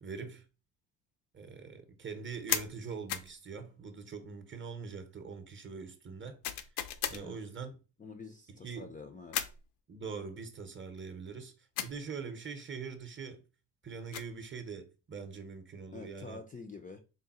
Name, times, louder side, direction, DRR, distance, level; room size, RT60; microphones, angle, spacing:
voice 1, 0.0-0.4 1.3-6.6 7.1-7.8 8.5-8.9 9.9-13.4 13.8-16.4, right 5 dB, 30° right, 0.7 m, -43 dB
sound 1, 2.5-2.7 3.1-3.3 6.4-7.2 9.3-9.6 11.8-12.0 13.9-14.4, left 10 dB, 70° left, 0.6 m, -35 dB
voice 2, 8.0-9.5 15.9-17.0, left 4 dB, 20° left, 0.4 m, -47 dB
3.8 x 2.1 x 4.1 m
cardioid pair, 85°, 41 cm